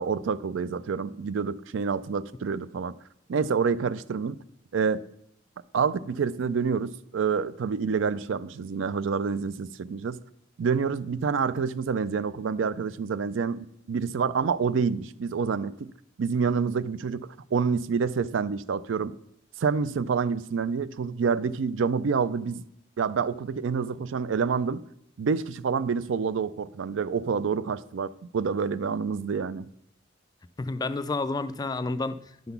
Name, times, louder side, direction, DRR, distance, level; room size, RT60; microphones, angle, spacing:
voice 1, 0.0-2.9 3.3-4.4 4.7-5.0 5.7-10.2 10.6-15.9 16.2-19.1 19.6-22.6 23.0-24.8 25.2-29.7, right 5 dB, 65° right, 0.4 m, -27 dB
voice 2, 30.6-32.5, left 3 dB, 20° left, 0.3 m, -30 dB
10.5 x 4.0 x 6.9 m
head